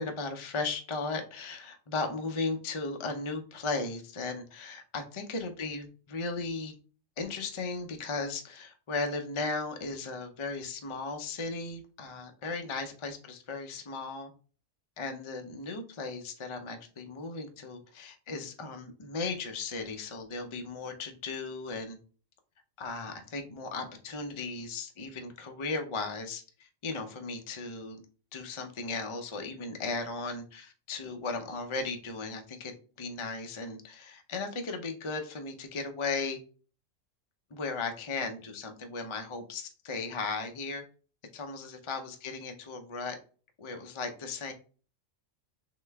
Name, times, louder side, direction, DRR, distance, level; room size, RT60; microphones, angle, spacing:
voice 1, 0.0-6.7 7.2-14.3 15.0-22.0 22.8-28.0 28.3-36.4 37.5-40.8 41.3-43.2 43.6-44.5, left 3 dB, 35° left, 5 dB, 0.5 m, -36 dB
3.8 x 3.2 x 3.4 m, 0.38 s
omnidirectional pair, 1.3 m